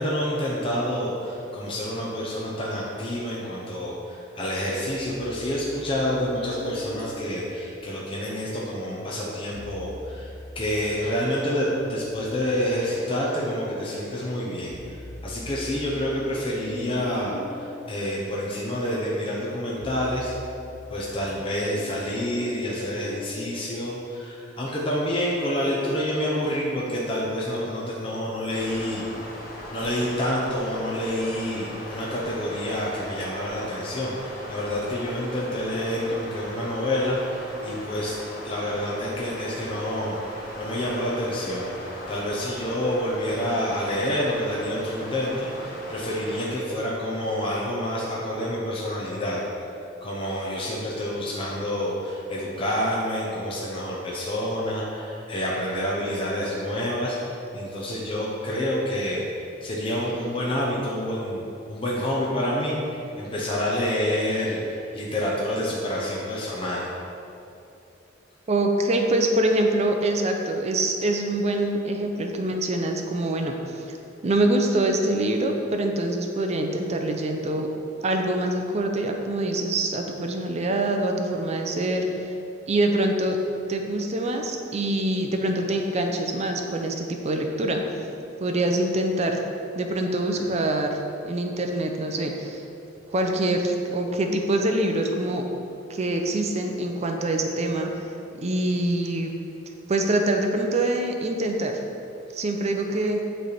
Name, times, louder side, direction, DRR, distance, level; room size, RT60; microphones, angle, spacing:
voice 1, 0.0-10.3 10.6-14.7 15.2-20.3 20.9-29.1 29.7-38.2 38.4-49.4 50.0-57.2 57.5-59.2 59.6-61.4 61.7-66.9 90.4-90.5, equal, 30° left, -5 dB, 0.8 m, -28 dB
sound 1, 4.9-8.4 9.4-13.8 14.2-23.5, left 1 dB, 85° left, 0.7 m, -43 dB
sound 2, 28.5-46.5, left 1 dB, 50° left, 1.4 m, -39 dB
voice 2, 68.5-74.0 74.2-77.7 78.0-82.1 82.7-83.4 83.7-87.8 88.4-89.4 89.8-91.0 91.3-92.6 93.1-95.4 95.9-98.1 98.3-99.3 99.9-101.7 102.3-103.2, right 1 dB, 35° right, 4 dB, 0.5 m, -25 dB
9.2 x 3.3 x 4.2 m, 2.7 s
head